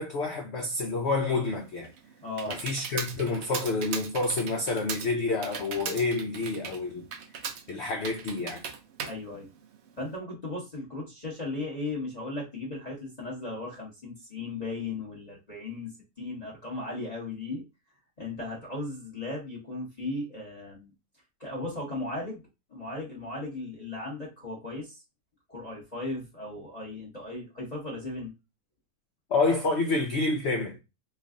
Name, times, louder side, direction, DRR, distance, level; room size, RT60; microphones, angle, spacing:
voice 1, 0.0-1.9 2.5-7.1 7.7-8.6 29.3-30.8, left 3 dB, 85° left, 0.5 m, -28 dB
Computer keyboard, 1.6-10.1, right 6 dB, 80° right, 0.6 m, -39 dB
voice 2, 2.2-2.6 9.0-9.5 10.0-15.9 16.2-17.6 18.2-20.9 21.4-22.4 22.7-25.0 25.5-28.3, left 2 dB, 30° left, 1.0 m, -36 dB
3.2 x 2.4 x 3.6 m
omnidirectional pair, 1.8 m